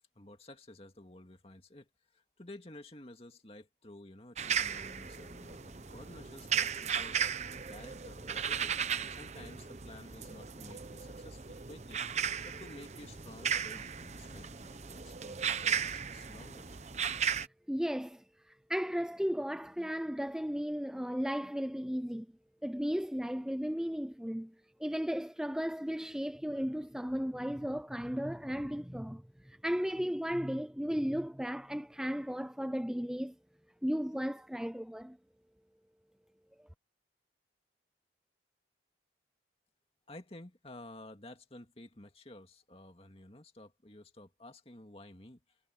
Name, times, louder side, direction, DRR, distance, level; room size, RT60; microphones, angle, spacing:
voice 1, 0.2-7.2 7.7-12.0 12.4-16.7 40.1-45.4, left 1 dB, 35° left, 2.4 m, -52 dB
sound 1, 4.4-17.5, right 7 dB, 40° right, 0.9 m, -36 dB
voice 2, 17.3-22.3 22.6-24.5 24.8-33.3 33.8-35.2, equal, 5° right, 0.5 m, -35 dB
head